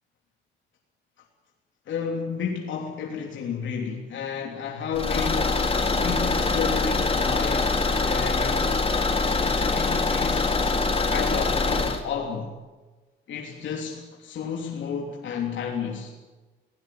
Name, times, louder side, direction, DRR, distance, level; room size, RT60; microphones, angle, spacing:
voice 1, 1.9-8.8 9.2-10.6 11.1-12.5 13.3-16.1, left 6 dB, 70° left, 3.3 m, -32 dB
Car / Engine, 4.9-12.0, left 3 dB, 30° left, 3.4 m, -24 dB
22.0 x 18.0 x 9.1 m
cardioid pair, 90°, 20 cm